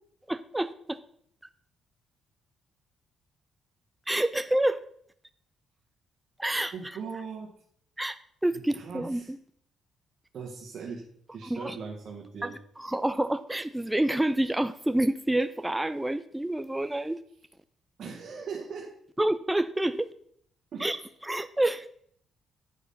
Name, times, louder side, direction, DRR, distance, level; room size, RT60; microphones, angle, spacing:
voice 1, 0.3-1.0 4.1-4.8 6.4-7.0 8.0-8.2 8.4-9.4 11.4-11.8 12.4-12.5 12.8-17.2 19.2-20.1 20.8-21.0 21.2-21.9, right 1 dB, 10° right, 11 dB, 0.4 m, -28 dB
voice 2, 6.7-7.5 8.5-9.3 10.3-11.0 11.3-12.5 18.0-18.9 20.7-20.9, right 5 dB, 60° right, -1 dB, 1.6 m, -39 dB
9.3 x 5.1 x 5.7 m, 0.65 s
cardioid pair, 90°, 0 cm